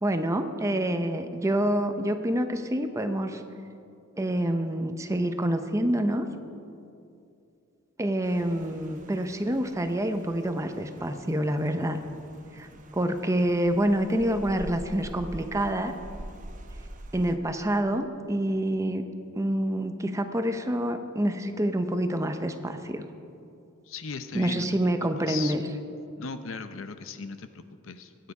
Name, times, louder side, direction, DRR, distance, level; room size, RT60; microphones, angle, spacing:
voice 1, 0.0-3.4 4.2-6.3 8.0-12.0 12.5-15.9 17.1-19.0 19.4-23.0 24.3-25.6, right 1 dB, 15° right, 7 dB, 0.7 m, -27 dB
Rain, 8.2-17.4, right 1 dB, 40° right, 0.9 m, -45 dB
voice 2, 23.9-25.5 26.2-28.3, left 5 dB, 65° left, 10 dB, 0.7 m, -38 dB
22.0 x 9.4 x 4.8 m, 2.6 s
head